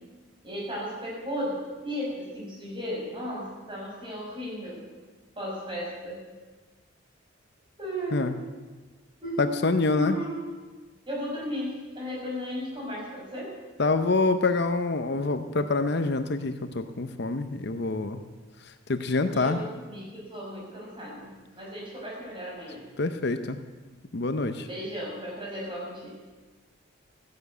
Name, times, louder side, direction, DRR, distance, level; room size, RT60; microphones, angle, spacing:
voice 1, 0.4-4.8 5.4-6.2 7.8-8.3 9.2-9.7 9.9-10.4 11.1-13.5 19.3-22.8 24.6-26.2, equal, 25° right, -4 dB, 5.5 m, -35 dB
voice 2, 9.4-10.2 13.8-18.2 18.9-19.6 23.0-23.6 24.1-24.7, left 3 dB, 55° left, 9 dB, 0.7 m, -26 dB
14.5 x 10.5 x 8.2 m, 1.3 s
head